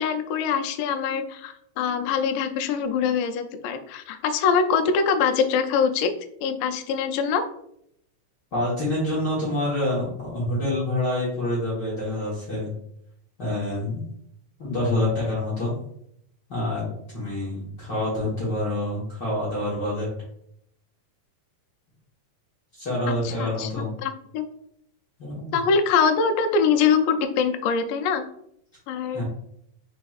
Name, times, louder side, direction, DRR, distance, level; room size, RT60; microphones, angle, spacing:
voice 1, 0.0-7.5 23.1-24.4 25.5-28.2 28.9-29.2, left 6 dB, 85° left, 6 dB, 2.2 m, -24 dB
voice 2, 8.5-12.7 13.4-14.0 14.6-15.7 16.5-20.1 22.8-23.9 25.2-25.6 29.1-29.2, left 1 dB, 60° left, -8 dB, 1.1 m, -27 dB
4.9 x 4.2 x 2.4 m, 0.73 s
omnidirectional pair, 3.9 m